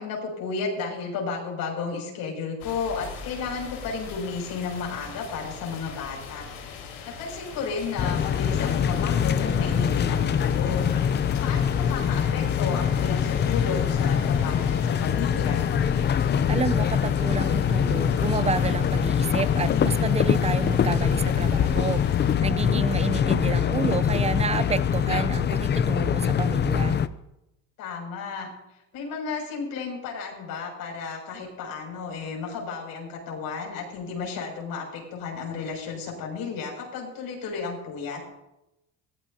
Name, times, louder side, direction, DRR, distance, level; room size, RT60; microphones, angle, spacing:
voice 1, 0.0-6.5 7.1-10.9 11.4-15.7 27.8-28.5 28.9-38.2, left 5 dB, 65° left, 0 dB, 7.0 m, -33 dB
sound 1, 2.6-22.4, left 6 dB, 80° left, 4.9 m, -41 dB
sound 2, 8.0-27.1, left 8 dB, 30° left, 0.6 m, -23 dB
voice 2, 16.5-22.0 22.4-27.0, right 5 dB, 15° right, 14 dB, 0.6 m, -30 dB
22.5 x 16.5 x 2.9 m, 0.89 s
cardioid pair, 130°, 38 cm